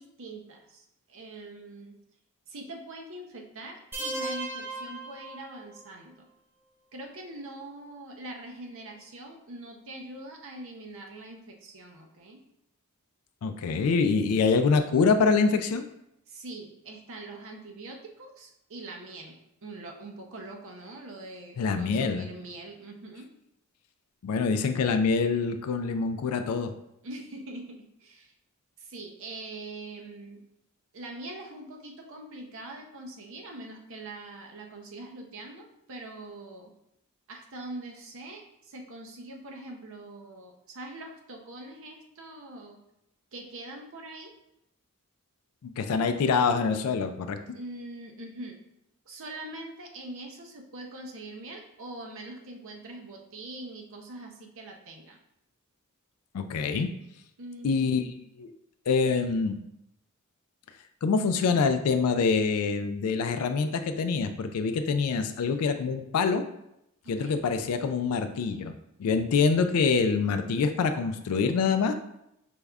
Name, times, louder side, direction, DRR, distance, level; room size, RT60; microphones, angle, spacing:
voice 1, 0.0-2.0 2.5-6.3 6.9-12.4 13.7-14.1 16.3-23.3 27.0-28.3 28.8-30.4 30.9-36.7 37.3-42.8 43.3-44.3 47.5-48.6 49.1-55.2 57.4-58.2 67.0-67.4, right 2 dB, 60° right, 2 dB, 0.6 m, -43 dB
sound 1, 3.9-5.9, right 2 dB, 10° right, 0.4 m, -36 dB
voice 2, 13.4-15.9 21.6-22.3 24.2-26.7 45.6-47.4 56.3-56.9 57.6-58.0 58.4-58.5 58.9-59.6 61.0-66.4 67.1-68.7 69.0-71.9, left 5 dB, 75° left, 8 dB, 0.4 m, -25 dB
5.1 x 3.4 x 2.3 m, 0.81 s
head